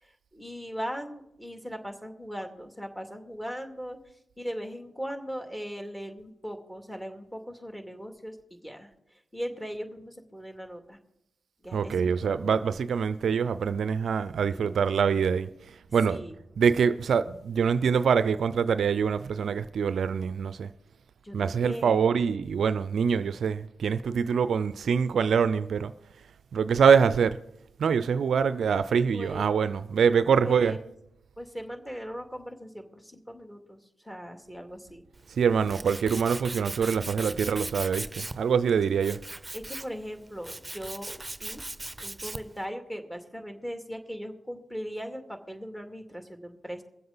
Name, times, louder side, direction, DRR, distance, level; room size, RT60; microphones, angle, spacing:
voice 1, 0.0-4.0 4.4-11.0 11.6-12.5 16.1-16.4 21.2-22.0 29.1-29.5 30.4-30.9 31.4-35.0 39.5-41.6 41.9-46.8, equal, 10° left, 2.4 m, -39 dB
voice 2, 11.7-16.2 16.6-20.7 21.3-25.9 26.5-27.4 27.8-30.8 35.3-39.2, right 6 dB, 70° right, 0.4 m, -25 dB
Tools, 35.1-42.6, right 2 dB, 20° right, 0.9 m, -39 dB
23.0 x 7.7 x 3.9 m
supercardioid pair, 40°, 0 cm